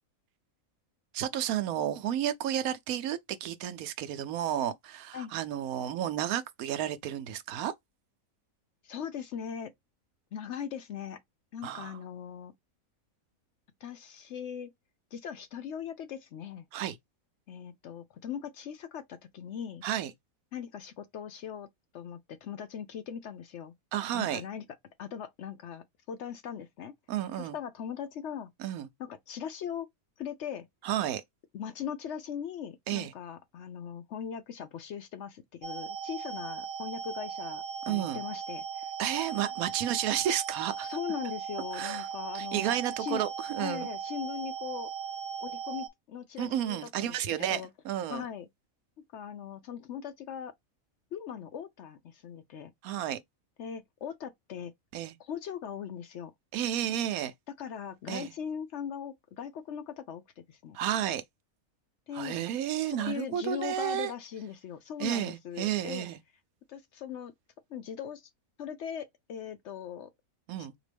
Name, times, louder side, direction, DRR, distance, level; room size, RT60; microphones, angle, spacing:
voice 1, 1.1-7.7 11.6-12.0 16.7-17.0 19.8-20.1 23.9-24.4 27.1-27.6 28.6-28.9 30.8-31.2 32.9-33.1 37.9-38.2 39.0-40.9 41.7-42.1 42.3-43.9 46.4-48.3 52.8-53.2 54.9-55.2 56.5-57.3 58.1-58.3 60.7-61.2 62.1-64.1 65.0-66.2 70.5-70.7, right 11 dB, 80° right, 1.0 m, -32 dB
voice 2, 8.8-9.7 10.3-11.2 11.5-12.5 13.8-14.7 15.1-16.7 17.5-19.8 20.5-21.7 21.9-23.7 24.1-24.6 25.0-26.9 27.4-28.5 29.0-29.9 30.2-30.7 31.5-38.9 40.8-43.2 43.6-44.9 45.4-47.7 48.1-48.5 49.1-50.5 51.1-52.7 53.6-54.7 55.2-56.3 57.6-60.2 60.5-60.8 62.1-62.4 62.9-66.1 66.7-67.3 67.7-68.3 68.6-70.1 70.6-70.7, left 8 dB, 65° left, 0.8 m, -40 dB
sound 1, 35.6-45.9, right 7 dB, 45° right, 1.4 m, -38 dB
3.9 x 2.9 x 3.3 m
omnidirectional pair, 1.5 m